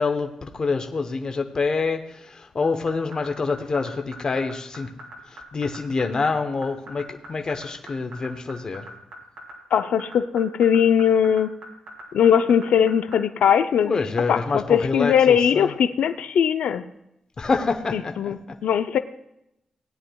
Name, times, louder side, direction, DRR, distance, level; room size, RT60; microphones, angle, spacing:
voice 1, 0.0-4.9 5.3-8.9 13.8-15.7 17.4-18.6, left 4 dB, 35° left, 5 dB, 0.8 m, -26 dB
sound 1, 2.6-13.1, right 1 dB, 90° right, 2.5 m, -40 dB
voice 2, 9.7-11.5 12.1-14.0 14.3-16.8 17.9-18.4 18.6-19.0, left 8 dB, 85° left, 10 dB, 0.4 m, -20 dB
17.5 x 9.6 x 2.3 m, 0.83 s
wide cardioid pair, 125°, 2 cm